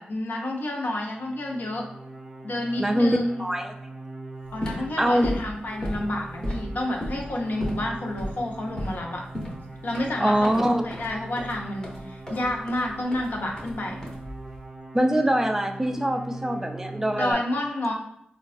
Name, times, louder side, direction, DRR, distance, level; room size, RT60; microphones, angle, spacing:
voice 1, 0.0-1.8 2.4-3.4 4.5-9.2 9.8-14.0 17.2-17.9, left 1 dB, 70° left, 0 dB, 0.6 m, -29 dB
sound 1, 1.1-17.3, right 2 dB, 35° right, 0.7 m, -41 dB
voice 2, 2.8-3.7 5.0-5.2 10.2-10.8 14.9-17.4, equal, 15° right, 5 dB, 0.3 m, -23 dB
sound 2, 4.4-14.6, equal, 20° left, 0.7 m, -35 dB
3.4 x 2.2 x 2.4 m, 0.72 s
wide cardioid pair, 90°, 3 cm